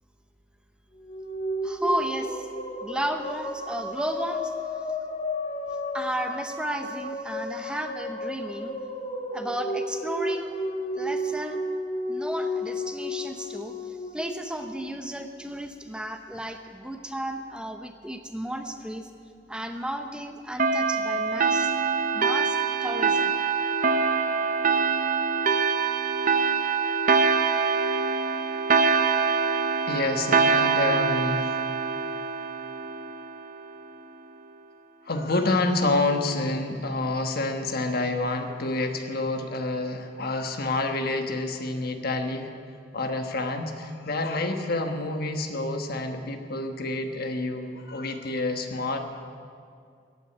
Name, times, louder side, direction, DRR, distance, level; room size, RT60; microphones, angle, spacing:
sound 1, 1.0-15.4, left 1 dB, 35° left, 1.5 m, -32 dB
voice 1, 1.6-2.5 2.8-4.5 5.9-8.8 9.3-10.5 10.9-11.6 12.1-19.1 19.5-21.7 22.1-23.3, right 1 dB, 5° right, 6 dB, 0.7 m, -33 dB
sound 2, 20.6-33.7, right 5 dB, 50° right, 0.8 m, -24 dB
voice 2, 29.9-31.6 35.0-42.5 42.9-49.0, left 2 dB, 60° left, 5 dB, 1.3 m, -28 dB
14.5 x 9.0 x 9.9 m, 2.3 s
head